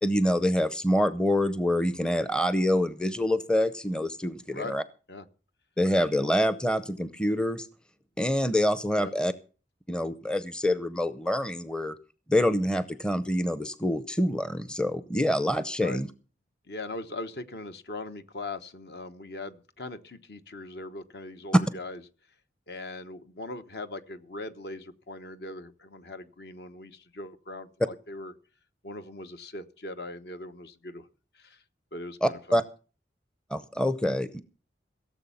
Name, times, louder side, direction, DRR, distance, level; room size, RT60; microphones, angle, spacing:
voice 1, 0.0-4.8 5.8-7.7 8.2-9.3 9.9-12.0 12.3-16.1 32.2-32.6 33.5-34.4, left 1 dB, 5° left, 13 dB, 0.6 m, -26 dB
voice 2, 16.7-22.0 22.7-28.3 28.8-31.1 31.3-31.6 31.9-32.6, left 2 dB, 60° left, 10 dB, 1.1 m, -40 dB
17.0 x 7.3 x 7.0 m, 0.38 s
head